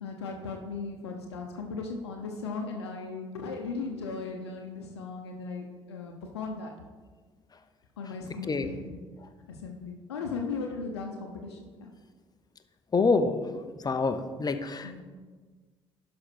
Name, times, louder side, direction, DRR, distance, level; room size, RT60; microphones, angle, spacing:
voice 1, 0.0-6.7 8.0-9.0 9.5-11.9 14.8-15.0, left 4 dB, 85° left, 2 dB, 0.8 m, -37 dB
voice 2, 12.9-13.5 13.8-15.0, left 4 dB, 30° left, 9 dB, 0.9 m, -26 dB
11.5 x 5.2 x 4.5 m, 1.4 s
hypercardioid pair, 55°, 14 cm